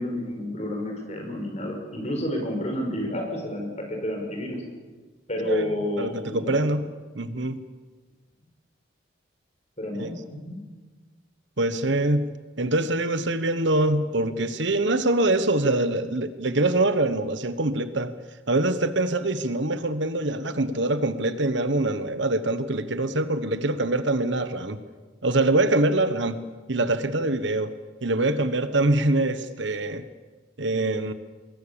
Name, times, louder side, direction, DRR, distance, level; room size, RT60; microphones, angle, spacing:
voice 1, 0.0-4.6 5.3-6.6 9.8-10.6, left 1 dB, 35° left, 2 dB, 5.2 m, -30 dB
voice 2, 6.0-6.9 7.1-7.7 9.9-10.1 11.6-12.3 12.6-18.1 18.5-24.8 25.2-26.4 26.7-27.7 28.0-30.0 30.6-31.1, right 2 dB, 70° right, 11 dB, 1.3 m, -24 dB
25.0 x 21.0 x 7.0 m, 1.4 s
head